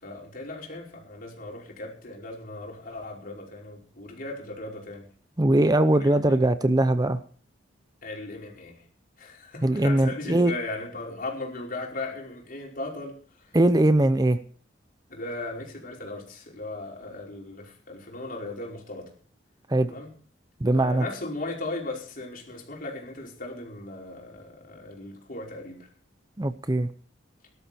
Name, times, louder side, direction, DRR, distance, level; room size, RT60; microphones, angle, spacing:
voice 1, 0.0-5.1 6.0-6.4 8.0-8.8 9.2-13.5 15.1-19.1 19.9-20.1 20.7-25.9, left 2 dB, 50° left, 5.2 m, -37 dB
voice 2, 5.4-7.2 9.6-10.5 13.5-14.4 19.7-19.9 20.6-21.0 26.4-26.9, right 1 dB, 20° right, 0.7 m, -21 dB
18.0 x 12.5 x 4.5 m
head